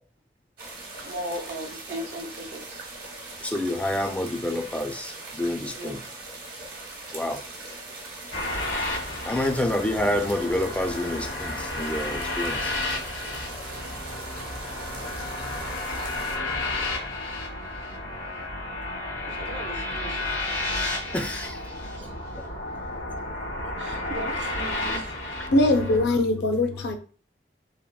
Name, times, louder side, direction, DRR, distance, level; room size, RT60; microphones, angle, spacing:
sound 1, 0.6-16.4, right 2 dB, 55° right, 0.8 m, -40 dB
voice 1, 1.0-2.8 5.8-6.1 14.1-14.6 15.3-16.1 19.2-20.4 21.7-22.1 23.8-25.2, right 1 dB, 85° right, 0.6 m, -38 dB
voice 2, 3.4-6.0 7.1-7.4 9.2-12.7 21.1-21.6 25.7-26.4, left 1 dB, 5° left, 0.3 m, -28 dB
sound 2, 8.3-26.1, left 2 dB, 90° left, 1.4 m, -32 dB
voice 3, 25.5-27.0, left 1 dB, 65° left, 0.5 m, -21 dB
3.4 x 2.0 x 2.3 m
head